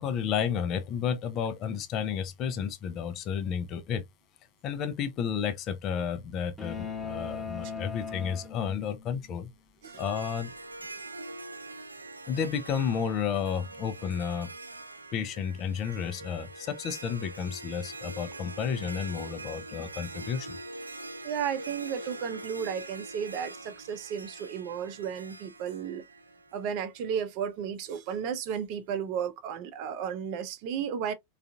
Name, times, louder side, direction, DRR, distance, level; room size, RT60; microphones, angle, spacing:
voice 1, 0.0-4.0 4.6-9.5 10.0-10.5 12.3-14.5 15.1-20.6, left 7 dB, 40° left, 0.5 m, -32 dB
sound 1, 6.6-9.1, left 5 dB, 10° left, 1.0 m, -38 dB
Harp, 9.8-27.1, right 2 dB, 90° right, 0.4 m, -43 dB
voice 2, 21.2-26.0 26.5-31.1, right 8 dB, 50° right, 0.6 m, -33 dB
3.7 x 2.5 x 2.3 m
figure-of-eight pair, 90°, 0 cm